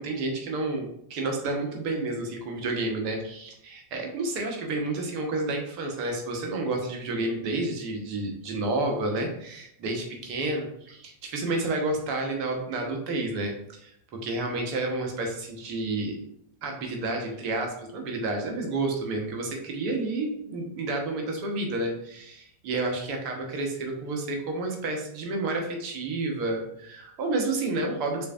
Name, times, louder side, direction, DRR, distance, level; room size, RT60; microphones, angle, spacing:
voice 1, 0.0-13.9 14.2-16.2 16.6-28.3, right 2 dB, 40° right, 2 dB, 1.0 m, -30 dB
6.5 x 2.6 x 2.5 m, 0.73 s
figure-of-eight pair, 90°, 0 cm